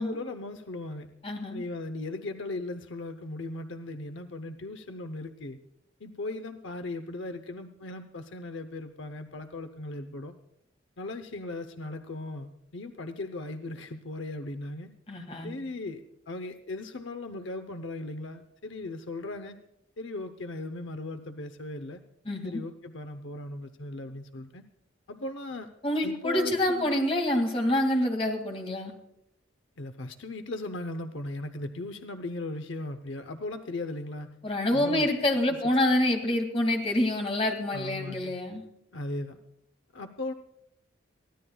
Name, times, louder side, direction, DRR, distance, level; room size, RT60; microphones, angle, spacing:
voice 1, 0.0-1.1 1.5-5.6 6.0-10.3 11.0-14.9 15.4-19.6 20.0-22.0 22.4-24.6 25.1-25.7 26.0-26.9 29.8-34.4 34.7-35.1 37.7-38.3 38.9-39.4 39.9-40.3, left 2 dB, 75° left, 8 dB, 0.8 m, -37 dB
voice 2, 1.2-1.6 15.1-15.5 22.3-22.6 25.8-28.9 34.4-38.6, left 1 dB, 30° left, 3 dB, 2.2 m, -27 dB
23.5 x 16.0 x 2.3 m, 0.83 s
head